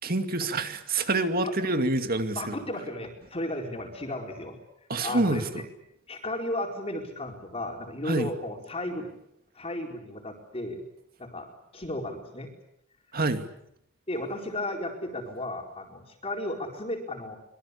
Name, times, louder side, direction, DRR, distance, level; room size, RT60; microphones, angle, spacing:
voice 1, 0.0-2.6 4.9-5.7 8.0-8.3 13.1-13.5, right 2 dB, 45° right, 8 dB, 2.5 m, -27 dB
voice 2, 2.3-4.6 5.0-5.6 6.1-9.1 9.6-10.8 11.2-12.5 14.1-17.4, left 1 dB, 30° left, 2 dB, 4.5 m, -34 dB
25.0 x 23.5 x 8.4 m, 0.76 s
head